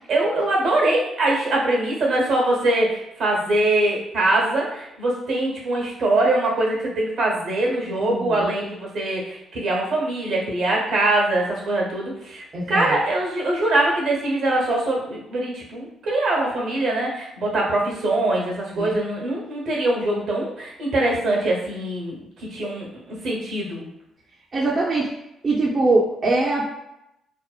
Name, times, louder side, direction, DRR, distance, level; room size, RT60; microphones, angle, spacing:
voice 1, 0.1-23.9, right 2 dB, 70° right, -2 dB, 0.8 m, -23 dB
voice 2, 8.1-8.5 12.5-13.0 18.7-19.0 24.5-25.1 25.4-26.7, right 2 dB, 45° right, -4 dB, 0.5 m, -22 dB
2.6 x 2.0 x 2.3 m, 0.85 s
supercardioid pair, 55°, 0 cm